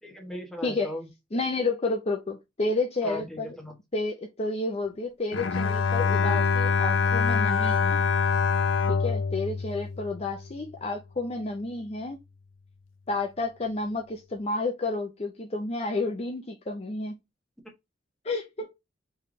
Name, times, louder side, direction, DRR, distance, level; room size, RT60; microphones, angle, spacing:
voice 1, 0.0-1.1 3.0-3.8, left 1 dB, ahead, 1.2 m, -37 dB
voice 2, 0.6-0.9 1.3-3.6 3.9-8.0 8.9-12.2 13.1-17.2 18.2-18.7, left 3 dB, 30° left, 0.6 m, -30 dB
Bowed string instrument, 5.3-10.6, left 5 dB, 85° left, 0.5 m, -25 dB
3.6 x 3.3 x 3.7 m
head